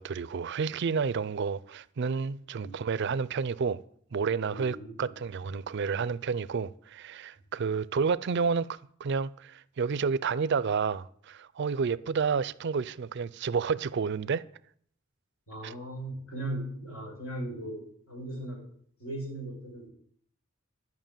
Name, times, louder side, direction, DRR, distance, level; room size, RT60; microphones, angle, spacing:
voice 1, 0.0-3.8 4.1-14.4 15.6-15.7, right 5 dB, 55° right, 0.4 m, -30 dB
voice 2, 4.5-5.1 15.5-18.7 19.0-19.9, right 1 dB, 90° left, 5.5 m, -38 dB
11.5 x 5.9 x 9.0 m
head